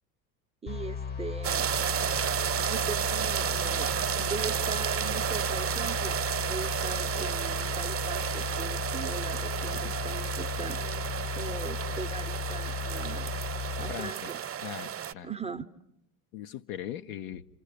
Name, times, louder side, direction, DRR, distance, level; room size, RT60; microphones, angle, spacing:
voice 1, 0.6-1.7 2.7-3.9 4.2-10.9 11.3-13.3 13.8-14.4 15.2-15.7, right 5 dB, 15° right, 8 dB, 1.0 m, -40 dB
sound 1, 0.7-14.0, left 6 dB, 20° left, 1.2 m, -36 dB
sound 2, 1.4-15.1, right 9 dB, 30° right, 1.3 m, -32 dB
voice 2, 13.8-14.3 14.6-15.3 16.3-17.5, left 10 dB, 65° left, 7 dB, 1.2 m, -39 dB
29.0 x 27.5 x 6.9 m, 0.77 s
hypercardioid pair, 70°, 44 cm